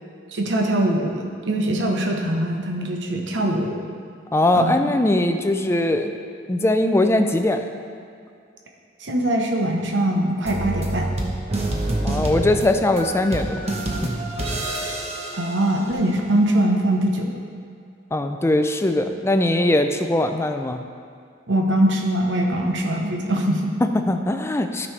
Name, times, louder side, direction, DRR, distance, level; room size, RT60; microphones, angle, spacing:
voice 1, 0.3-3.8 4.5-4.9 9.0-11.1 15.4-17.3 21.5-23.8, right 1 dB, 70° right, 1 dB, 0.9 m, -22 dB
voice 2, 4.3-6.1 6.5-7.7 12.0-13.6 18.1-20.8 23.8-24.9, left 1 dB, 15° left, 6 dB, 0.4 m, -20 dB
sound 1, 10.4-16.2, right 1 dB, 35° right, 1.0 m, -27 dB
12.5 x 5.4 x 3.3 m, 2.3 s
head